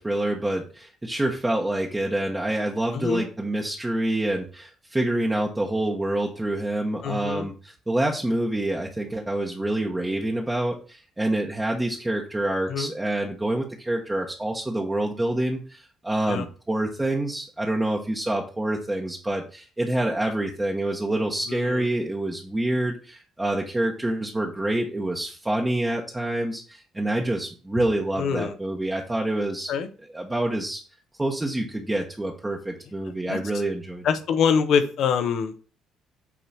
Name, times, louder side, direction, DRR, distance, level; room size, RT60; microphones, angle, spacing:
voice 1, 0.0-29.7 30.1-30.8 31.2-34.1, right 1 dB, 15° right, -1 dB, 1.1 m, -27 dB
voice 2, 7.0-7.5 12.7-12.9 16.3-16.5 21.5-21.8 28.1-28.5 29.7-29.9 33.3-33.4 34.0-35.5, left 6 dB, 65° left, 8 dB, 1.0 m, -24 dB
8.6 x 3.0 x 5.5 m, 0.38 s
cardioid pair, 85°, 0 cm